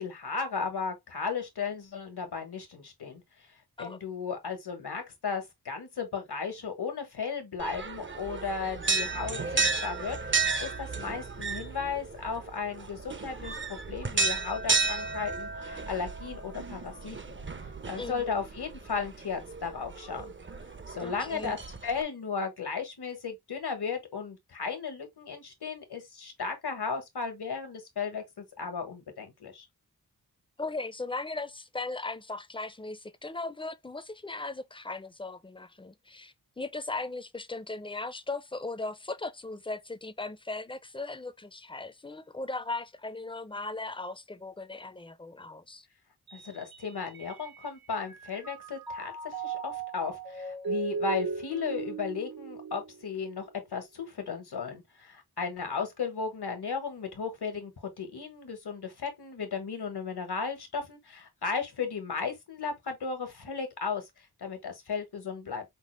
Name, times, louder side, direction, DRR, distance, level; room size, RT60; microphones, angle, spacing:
voice 1, 0.0-3.2 3.8-17.4 17.9-20.3 20.9-29.7 46.3-64.0 64.4-65.6, left 5 dB, 75° left, 1.5 m, -35 dB
sound 1, 7.6-22.0, right 4 dB, 30° right, 0.7 m, -33 dB
voice 2, 18.0-18.4 21.0-21.6 30.6-45.9, left 3 dB, 15° left, 0.6 m, -38 dB
Mallet percussion, 46.3-47.6 48.0-53.4, right 4 dB, 65° right, 1.0 m, -37 dB
5.3 x 2.0 x 3.2 m
cardioid pair, 45°, 39 cm